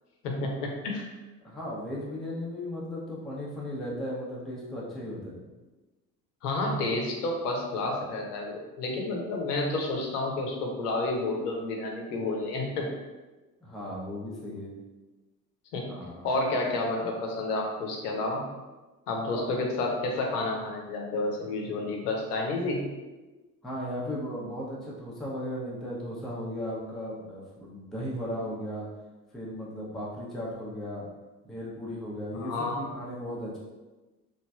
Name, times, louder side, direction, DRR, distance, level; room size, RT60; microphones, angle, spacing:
voice 1, 0.2-1.1 6.4-12.9 15.7-15.9 16.2-18.5 19.1-22.9 32.3-32.9, left 2 dB, 70° left, 1 dB, 0.7 m, -30 dB
voice 2, 1.4-5.5 13.6-14.7 15.9-16.3 19.3-19.5 23.6-28.9 29.3-31.1 31.4-33.6, equal, ahead, -5 dB, 0.5 m, -36 dB
3.0 x 2.6 x 2.2 m, 1.2 s
figure-of-eight pair, 70°, 48 cm